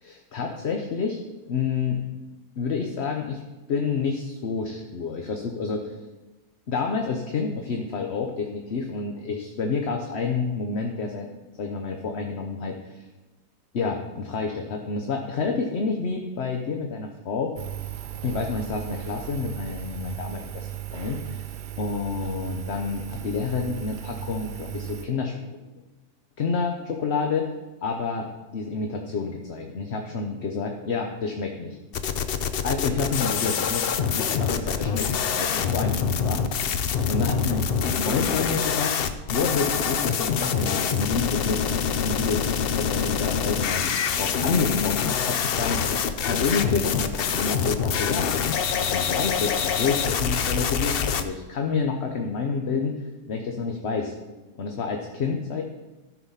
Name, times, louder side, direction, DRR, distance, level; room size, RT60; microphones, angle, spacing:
voice 1, 0.0-2.0 2.6-3.4 3.7-6.0 6.7-11.3 11.6-13.1 13.7-17.5 18.2-25.4 26.4-27.5 27.8-31.8 32.6-38.9 39.3-42.5 42.8-43.8 44.2-45.8 46.2-48.3 48.8-53.0 53.3-54.1 54.5-55.6, left 4 dB, 50° left, 3 dB, 0.9 m, -29 dB
Engine, 17.6-25.1, right 13 dB, 85° right, 1.4 m, -36 dB
sound 1, 31.9-51.2, left 7 dB, 85° left, 0.5 m, -25 dB
13.5 x 4.9 x 5.6 m, 1.2 s
omnidirectional pair, 1.7 m